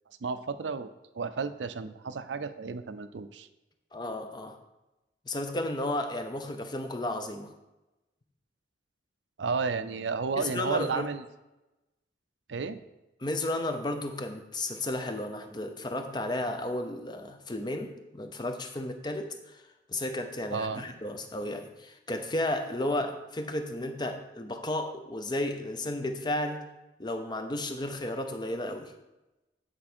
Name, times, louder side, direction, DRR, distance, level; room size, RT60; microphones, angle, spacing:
voice 1, 0.2-0.9 1.1-3.5 9.4-11.2 12.5-12.8 20.5-20.8, right 5 dB, 85° right, 11 dB, 0.5 m, -32 dB
voice 2, 3.9-4.6 5.3-7.5 10.4-11.1 13.2-19.6 19.9-26.7 27.0-28.9, left 1 dB, 25° left, 6 dB, 0.6 m, -33 dB
8.7 x 4.5 x 4.3 m, 1.0 s
head